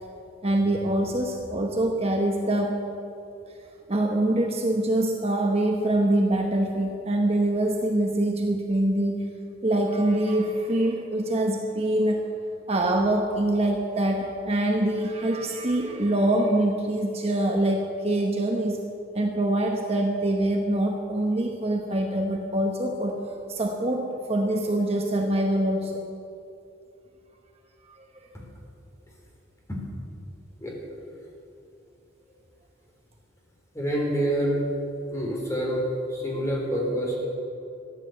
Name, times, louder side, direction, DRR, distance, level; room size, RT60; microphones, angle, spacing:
voice 1, 0.4-2.8 3.9-9.3 9.6-12.2 12.7-18.8 19.1-23.2 23.5-26.0 27.9-28.4, right 1 dB, 30° right, 2 dB, 1.0 m, -24 dB
voice 2, 33.7-34.6 35.1-35.8 36.1-37.3, equal, 15° left, -2 dB, 3.7 m, -27 dB
14.0 x 11.5 x 7.8 m, 2.6 s
head